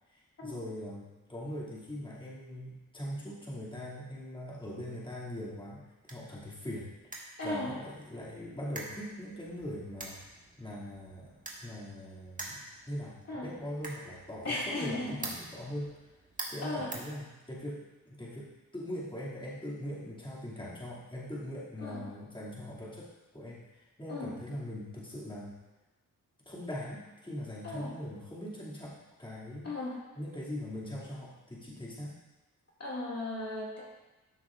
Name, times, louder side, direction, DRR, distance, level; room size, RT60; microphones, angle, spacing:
voice 1, 0.1-6.9 7.4-10.2 10.6-15.9 16.5-25.6 26.5-29.7 30.1-32.1, left 1 dB, 15° left, -8 dB, 2.4 m, -41 dB
sound 1, 5.5-17.8, right 2 dB, 25° right, 1.8 m, -47 dB
voice 2, 14.4-15.3 16.6-16.9 21.8-22.0 24.1-24.3 27.6-27.9 29.6-30.0 32.8-33.8, left 2 dB, 50° left, -6 dB, 2.3 m, -36 dB
13.0 x 6.2 x 2.5 m, 1.1 s
cardioid pair, 75°, 33 cm